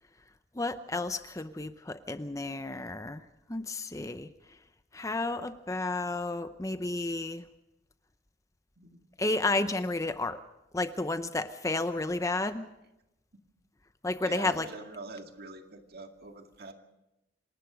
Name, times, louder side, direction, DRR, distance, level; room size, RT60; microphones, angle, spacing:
voice 1, 0.5-4.3 4.9-7.5 9.2-10.4 10.7-12.7 14.0-14.7, left 2 dB, 15° left, 11 dB, 0.7 m, -32 dB
voice 2, 14.2-16.7, right 3 dB, 55° right, 4 dB, 2.1 m, -44 dB
27.0 x 19.0 x 5.1 m, 0.91 s
head